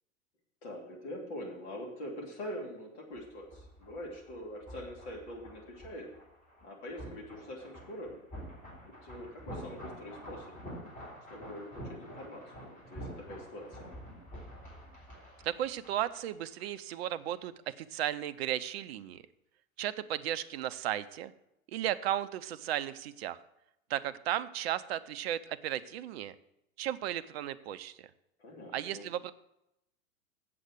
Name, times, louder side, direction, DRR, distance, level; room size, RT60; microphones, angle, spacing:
voice 1, 0.6-6.1 6.6-8.1 8.8-10.5 11.3-14.0 28.4-29.1, equal, 50° left, 0 dB, 3.0 m, -44 dB
sound 1, 3.1-16.9 17.2-17.4, equal, 20° left, 4.1 m, -48 dB
voice 2, 15.4-19.2 19.8-21.3 21.7-23.4 23.9-26.3 26.8-28.1 28.7-29.3, right 11 dB, 50° right, 13 dB, 0.6 m, -35 dB
8.0 x 7.7 x 6.2 m, 0.85 s
figure-of-eight pair, 95°, 42 cm